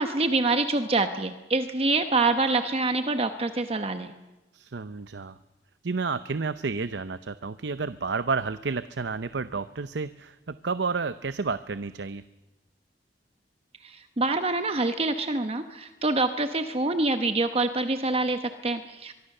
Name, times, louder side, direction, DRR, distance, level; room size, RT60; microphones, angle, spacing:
voice 1, 0.0-4.1 13.8-19.1, right 3 dB, 35° right, 8 dB, 1.0 m, -26 dB
voice 2, 4.5-5.3 5.8-12.2, right 4 dB, 90° right, 13 dB, 0.7 m, -31 dB
23.5 x 23.0 x 6.7 m, 1.0 s
head